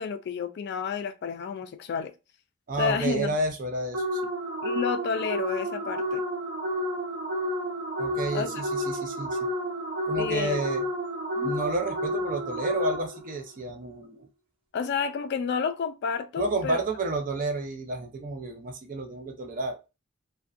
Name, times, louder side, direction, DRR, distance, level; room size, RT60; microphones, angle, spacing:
voice 1, 0.0-2.1 2.8-3.3 4.6-6.2 8.3-8.6 10.2-10.6 11.4-11.6 14.7-16.8, left 6 dB, 55° left, 0.3 m, -30 dB
voice 2, 2.7-4.3 8.0-9.4 10.1-10.8 11.4-14.3 16.4-19.8, right 2 dB, 40° right, 0.5 m, -31 dB
sound 1, 3.9-13.3, equal, 75° right, 0.8 m, -31 dB
2.5 x 2.2 x 2.4 m
head